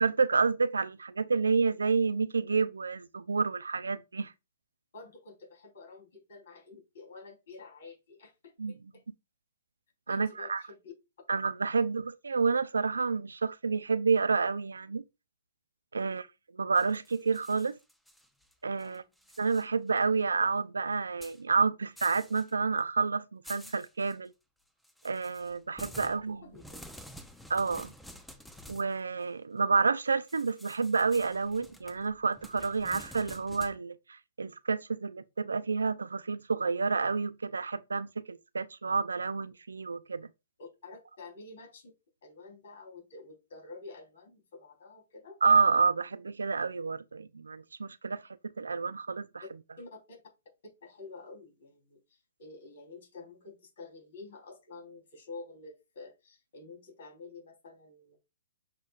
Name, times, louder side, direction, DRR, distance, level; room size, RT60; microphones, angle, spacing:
voice 1, 0.0-4.3 8.6-8.7 10.1-10.6 11.3-15.0 15.9-16.3 16.5-17.8 18.6-19.0 19.4-24.3 25.0-26.4 27.5-27.9 28.7-34.0 34.4-40.3 45.4-48.2 48.6-49.3, right 4 dB, 85° right, 0.5 m, -29 dB
voice 2, 4.9-9.0 10.1-10.9 11.7-11.9 16.0-16.2 18.8-19.1 26.4-26.8 40.6-41.9 42.2-45.4 49.8-50.2 50.8-58.2, left 3 dB, 65° left, 3.6 m, -49 dB
sound 1, 16.7-18.5 18.8-19.6 20.0-20.1 21.2-21.4 22.0-22.5 22.8-22.9 23.4-24.1 24.8-28.9 30.3-33.8, equal, ahead, 0.7 m, -50 dB
7.3 x 5.1 x 2.5 m
hypercardioid pair, 130°, 0 cm